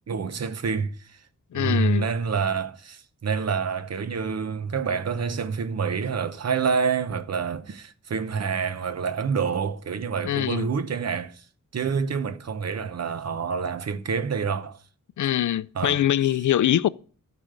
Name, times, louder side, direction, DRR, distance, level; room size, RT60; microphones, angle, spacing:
voice 1, 0.1-1.2 1.5-11.4 11.7-14.8 15.7-16.0, right 5 dB, 55° right, 0.9 m, -27 dB
voice 2, 1.5-2.1 10.2-10.7 15.2-16.9, left 12 dB, 70° left, 0.5 m, -23 dB
13.5 x 5.2 x 6.8 m
wide cardioid pair, 150°, 32 cm